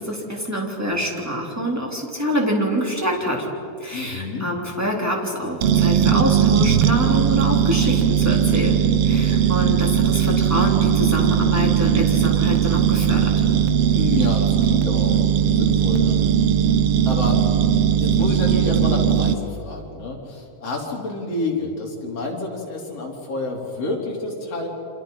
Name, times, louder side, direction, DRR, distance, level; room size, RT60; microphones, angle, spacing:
voice 1, 0.0-3.4 3.8-13.3, equal, 5° right, -1 dB, 3.3 m, -26 dB
voice 2, 3.9-4.5 9.3-9.5 13.9-15.3 15.5-16.3 17.1-17.4 18.0-24.7, left 3 dB, 55° left, -1 dB, 4.6 m, -29 dB
sound 1, 5.6-19.3, right 8 dB, 70° right, 1.5 m, -18 dB
29.0 x 26.5 x 5.7 m, 2.6 s
omnidirectional pair, 3.3 m